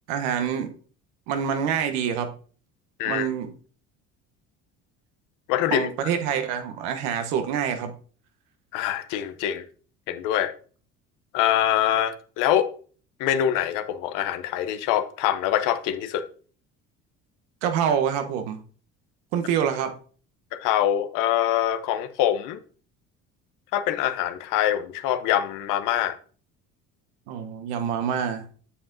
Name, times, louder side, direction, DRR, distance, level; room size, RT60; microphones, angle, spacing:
voice 1, 0.1-0.7 1.3-2.3 3.0-3.5 5.7-7.9 17.6-18.6 19.3-20.0 27.3-28.4, right 8 dB, 80° right, 1.0 m, -26 dB
voice 2, 5.5-5.9 8.7-9.6 10.1-10.5 11.3-12.7 13.2-16.2 20.6-22.6 23.7-26.1, left 11 dB, 75° left, 0.8 m, -24 dB
8.3 x 7.3 x 2.6 m
supercardioid pair, 80°, 32 cm